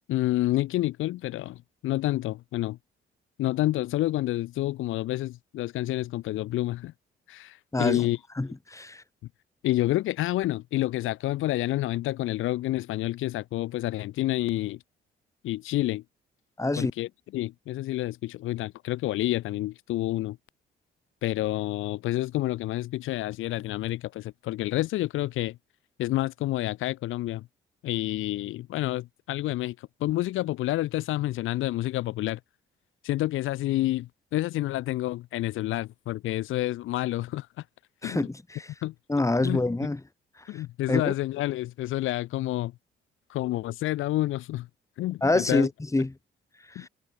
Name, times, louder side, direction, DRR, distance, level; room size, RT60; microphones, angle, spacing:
voice 1, 0.1-2.8 3.4-6.9 7.3-8.2 9.6-14.8 15.4-16.0 16.8-20.4 21.2-25.6 26.0-27.5 27.8-32.4 33.0-37.5 38.0-38.3 38.8-38.9 39.4-39.6 40.5-42.7 43.3-44.7 45.0-45.7 46.8-46.9, left 16 dB, 90° left, 3.4 m, -29 dB
voice 2, 7.7-8.1 8.4-9.0 16.6-16.9 38.0-38.7 39.1-40.0 40.5-40.6 40.9-41.1 45.2-46.1 46.7-46.9, left 2 dB, 15° left, 4.8 m, -26 dB
cardioid pair, 90°, 20 cm